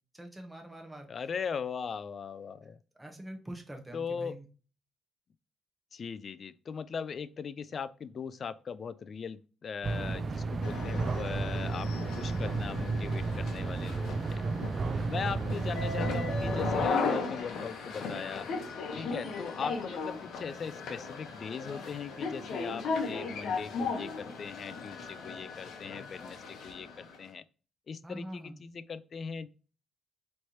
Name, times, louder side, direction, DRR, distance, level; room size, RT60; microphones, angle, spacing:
voice 1, 0.1-1.1 2.9-4.4 14.9-15.1 28.0-28.6, right 1 dB, 10° right, 1.1 m, -44 dB
voice 2, 1.1-2.8 3.9-4.4 5.9-14.5 15.1-18.5 18.9-27.4 27.9-29.5, left 6 dB, 50° left, 0.3 m, -39 dB
sound 1, 9.8-16.9, right 3 dB, 40° right, 0.4 m, -32 dB
sound 2, 10.6-27.2, left 4 dB, 70° left, 0.9 m, -36 dB
4.4 x 3.2 x 2.8 m
cardioid pair, 90°, 0 cm